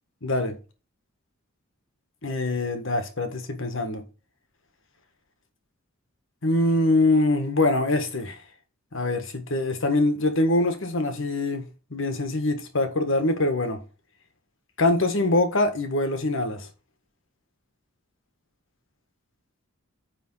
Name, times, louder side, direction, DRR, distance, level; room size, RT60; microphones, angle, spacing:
voice 1, 0.2-0.6 2.2-4.0 6.4-8.4 8.9-13.8 14.8-16.7, left 2 dB, 65° left, 1.6 m, -24 dB
9.3 x 3.6 x 6.3 m
head